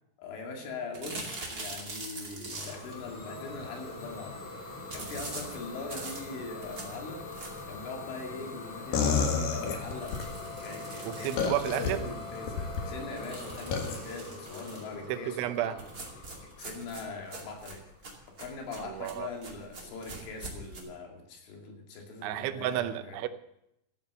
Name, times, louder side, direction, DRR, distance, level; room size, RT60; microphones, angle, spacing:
voice 1, 0.2-15.8 16.2-16.3 16.6-17.8 18.3-23.2, left 3 dB, 80° left, 1 dB, 4.9 m, -42 dB
sound 1, 0.9-3.0 4.9-7.8 8.3-8.4 8.7-8.8 9.1-9.2 9.9-12.4 13.2-15.0 15.8-20.8, right 2 dB, 30° right, 1.8 m, -43 dB
Idling / Domestic sounds home sounds, 2.5-18.1, left 3 dB, 30° left, 4.2 m, -43 dB
sound 2, 8.9-10.3 11.4-11.9 12.5-12.8 13.7-14.0, left 6 dB, 60° left, 2.9 m, -28 dB
voice 2, 11.0-12.0 15.1-15.8 18.8-19.3 22.2-23.3, right 13 dB, 80° right, 11 dB, 3.1 m, -32 dB
14.5 x 8.9 x 6.9 m, 0.82 s
omnidirectional pair, 5.6 m